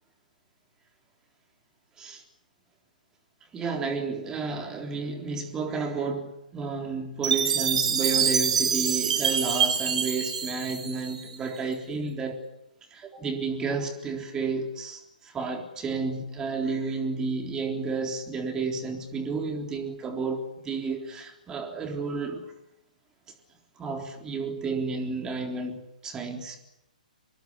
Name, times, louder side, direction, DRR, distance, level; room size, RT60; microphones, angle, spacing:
voice 1, 3.5-12.4 12.9-22.5 23.8-26.6, right 4 dB, 15° right, 3.8 m, -31 dB
Chime, 7.2-11.5, right 7 dB, 55° right, 4.7 m, -26 dB
26.0 x 21.0 x 9.6 m
figure-of-eight pair, 125°, 4 cm